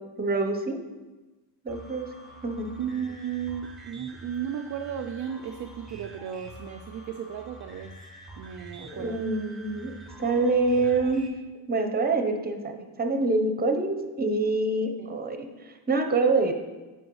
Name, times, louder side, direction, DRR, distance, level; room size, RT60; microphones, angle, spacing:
voice 1, 0.2-0.8 1.6-2.1 2.4-2.7 8.8-9.9 10.2-11.3 11.7-16.5, right 3 dB, 20° right, 5 dB, 0.8 m, -26 dB
sound 1, 1.7-11.3, right 2 dB, ahead, 1.2 m, -46 dB
voice 2, 2.8-7.9 8.4-9.2 15.0-15.1, right 8 dB, 40° right, 5 dB, 0.4 m, -35 dB
8.7 x 4.7 x 3.1 m, 1.2 s
supercardioid pair, 75°, 48 cm